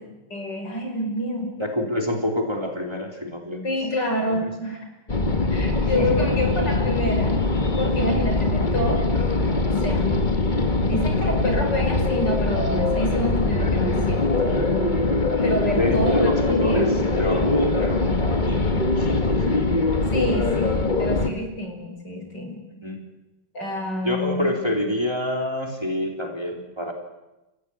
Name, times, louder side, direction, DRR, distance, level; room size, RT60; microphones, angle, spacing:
voice 1, 0.3-1.5 3.6-4.8 5.5-7.3 7.8-10.1 10.8-14.3 15.4-17.0 20.1-22.6 23.5-24.5, left 1 dB, 70° left, 3 dB, 6.0 m, -28 dB
voice 2, 1.6-3.7 4.3-4.4 6.0-6.2 15.8-19.6 22.8-23.1 24.0-26.9, left 1 dB, 15° right, 3 dB, 3.3 m, -27 dB
sound 1, 5.1-21.3, left 2 dB, 25° left, 1.7 m, -22 dB
27.5 x 15.5 x 9.7 m, 1.0 s
omnidirectional pair, 1.9 m